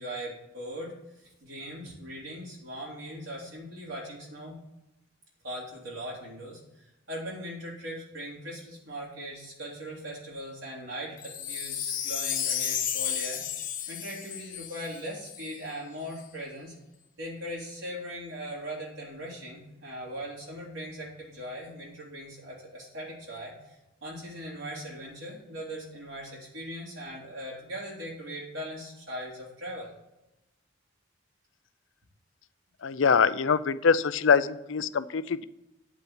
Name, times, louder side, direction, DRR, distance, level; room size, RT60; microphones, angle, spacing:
voice 1, 0.0-4.6 5.4-16.7 17.2-29.9, equal, 65° right, -5 dB, 3.1 m, -40 dB
Wind chime, 11.2-15.6 16.1-16.2, left 9 dB, 40° left, 1.0 m, -33 dB
voice 2, 32.8-35.4, left 6 dB, 65° left, 15 dB, 0.5 m, -24 dB
9.2 x 5.7 x 7.2 m, 0.92 s
head